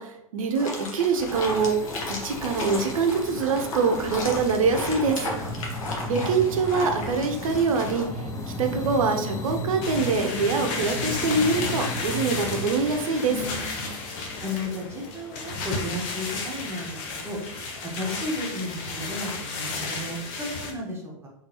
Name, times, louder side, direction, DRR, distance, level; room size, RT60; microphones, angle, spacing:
voice 1, 0.0-5.3 6.1-8.1 8.6-13.4, right 4 dB, 75° right, 5 dB, 0.7 m, -24 dB
sound 1, 0.5-8.0, left 1 dB, 70° left, 1.0 m, -34 dB
sound 2, 1.3-16.6, left 1 dB, 20° left, 0.7 m, -36 dB
sound 3, 9.8-20.7, left 3 dB, 50° left, 0.9 m, -33 dB
voice 2, 13.3-13.9 14.4-17.4 18.0-21.3, left 1 dB, 15° right, -2 dB, 1.2 m, -34 dB
3.7 x 3.1 x 2.9 m, 0.79 s
hypercardioid pair, 100°, 18 cm